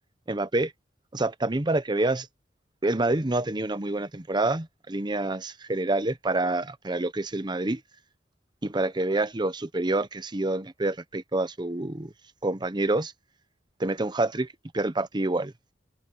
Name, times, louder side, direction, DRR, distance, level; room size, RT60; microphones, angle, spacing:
voice 1, 0.3-0.7 1.1-2.3 2.8-7.8 8.6-12.1 12.4-13.1 13.8-14.5 14.7-15.5, right 2 dB, 25° right, 0.9 m, -27 dB
open air
head